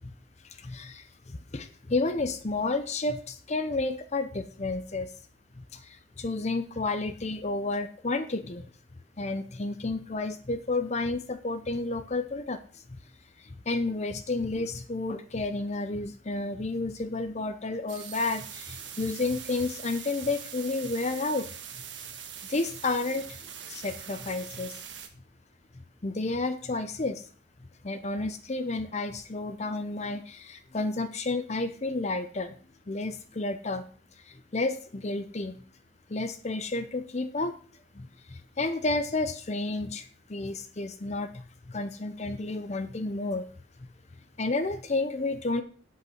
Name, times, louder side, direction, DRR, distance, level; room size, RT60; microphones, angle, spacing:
voice 1, 0.6-5.1 5.6-8.7 9.2-12.8 13.4-21.5 22.5-23.4 23.7-24.8 26.0-27.3 27.8-32.5 32.9-33.8 34.2-35.6 36.1-37.6 37.9-43.4 44.4-45.6, left 3 dB, 35° left, 9 dB, 0.6 m, -31 dB
sound 1, 17.9-25.1, right 8 dB, 70° right, 1.3 m, -42 dB
8.1 x 7.9 x 5.8 m, 0.42 s
head